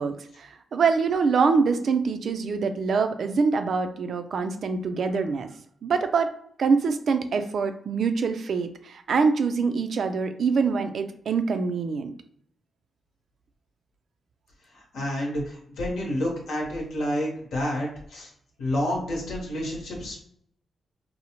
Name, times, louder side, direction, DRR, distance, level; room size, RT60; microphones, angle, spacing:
voice 1, 0.0-5.5 5.8-6.3 6.6-12.1, right 5 dB, 65° right, 8 dB, 0.3 m, -24 dB
voice 2, 14.7-18.3 18.6-20.4, left 1 dB, 85° left, -2 dB, 1.0 m, -29 dB
2.7 x 2.0 x 2.9 m, 0.65 s
cardioid pair, 70°, 0 cm